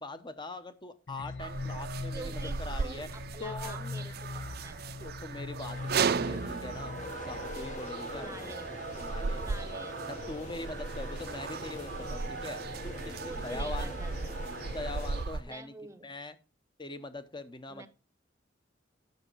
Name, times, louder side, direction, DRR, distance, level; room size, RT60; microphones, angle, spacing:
voice 1, 0.0-3.1 3.4-3.8 5.0-8.5 9.0-9.4 10.1-14.0 14.7-15.7 16.0-16.4 16.8-17.9, left 2 dB, 25° left, 1.0 m, -42 dB
sound 1, 1.1-7.1, left 3 dB, 80° left, 0.9 m, -41 dB
sound 2, 1.4-15.4, right 5 dB, 55° right, 0.5 m, -36 dB
voice 2, 2.1-4.9 8.1-8.8 9.4-10.1 13.2-14.3 15.5-16.1 17.7-17.9, right 2 dB, 15° right, 0.8 m, -46 dB
sound 3, 5.7-15.3, left 2 dB, 45° left, 1.3 m, -43 dB
8.6 x 6.7 x 4.6 m
head